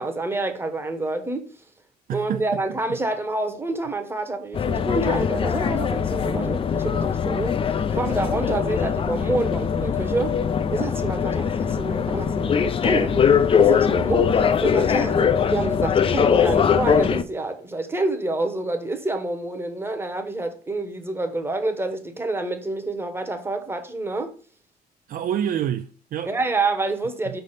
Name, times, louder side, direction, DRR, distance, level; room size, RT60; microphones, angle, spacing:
voice 1, 0.0-1.5 2.1-7.6 7.9-10.3 10.7-13.3 13.6-24.3 26.3-27.4, right 2 dB, 15° right, 1.0 m, -27 dB
voice 2, 2.1-2.6 25.1-26.3 27.2-27.4, right 9 dB, 55° right, 0.4 m, -27 dB
sound 1, 4.5-17.2, left 7 dB, 35° left, 0.4 m, -21 dB
5.2 x 3.4 x 5.6 m
cardioid pair, 115°, 17 cm